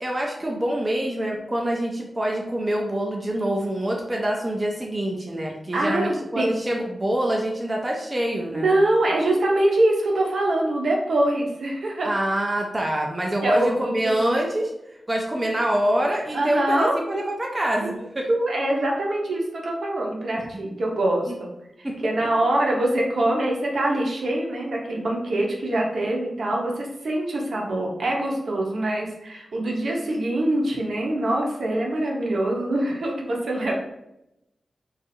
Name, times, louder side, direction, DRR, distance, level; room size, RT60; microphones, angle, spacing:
voice 1, 0.0-8.7 12.0-14.7 15.1-18.3 21.3-21.4 21.8-22.0, right 1 dB, 20° right, -1 dB, 0.4 m, -25 dB
voice 2, 5.7-6.5 8.5-12.1 13.4-14.1 16.3-17.0 17.8-17.9 18.3-21.5 22.0-33.7, right 1 dB, 65° right, -1 dB, 0.7 m, -24 dB
2.6 x 2.4 x 4.1 m, 0.87 s
wide cardioid pair, 170°, 0 cm